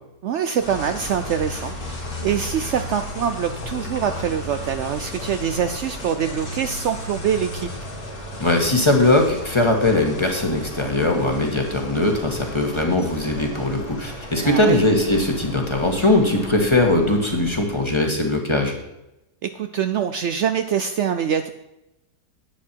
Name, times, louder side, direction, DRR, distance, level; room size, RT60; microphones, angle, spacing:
voice 1, 0.2-1.7 2.2-7.7 14.4-14.8 19.4-21.5, right 8 dB, 85° right, 8 dB, 0.6 m, -24 dB
sound 1, 0.6-17.9, left 1 dB, 60° left, 2.5 m, -34 dB
voice 2, 8.4-18.7, left 2 dB, 15° left, 2 dB, 1.5 m, -20 dB
10.5 x 8.6 x 4.5 m, 0.91 s
omnidirectional pair, 1.8 m